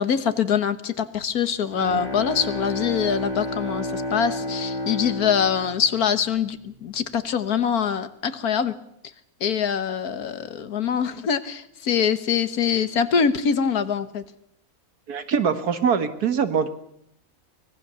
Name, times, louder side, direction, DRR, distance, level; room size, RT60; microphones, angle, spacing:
voice 1, 0.0-8.7 9.4-14.2, left 7 dB, 75° left, 12 dB, 1.7 m, -24 dB
Bowed string instrument, 1.4-6.9, left 1 dB, 35° left, 2.5 m, -31 dB
voice 2, 15.1-16.7, right 6 dB, 80° right, 9 dB, 2.1 m, -23 dB
24.5 x 19.0 x 6.9 m, 0.74 s
omnidirectional pair, 1.6 m